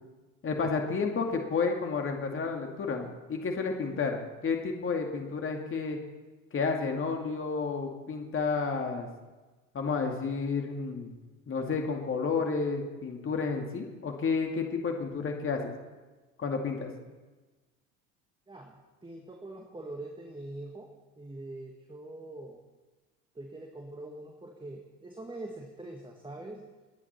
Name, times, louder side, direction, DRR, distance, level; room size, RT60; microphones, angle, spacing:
voice 1, 0.4-6.0 6.5-9.1 9.7-11.1 11.5-15.7 16.4-16.9, left 4 dB, 30° left, 2 dB, 2.3 m, -31 dB
voice 2, 18.5-22.6 23.4-26.7, right 2 dB, 10° right, 2 dB, 1.8 m, -43 dB
29.0 x 9.8 x 4.3 m, 1.2 s
hypercardioid pair, 70°, 39 cm